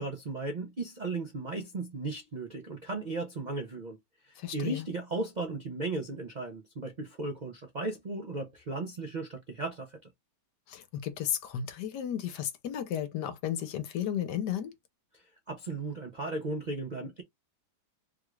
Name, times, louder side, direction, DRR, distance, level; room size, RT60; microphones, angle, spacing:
voice 1, 0.0-4.0 4.2-10.0 15.1-17.2, right 3 dB, 75° right, 0.4 m, -36 dB
voice 2, 4.4-4.9 10.7-14.7, left 10 dB, 75° left, 1.3 m, -34 dB
3.5 x 2.4 x 3.1 m
omnidirectional pair, 1.9 m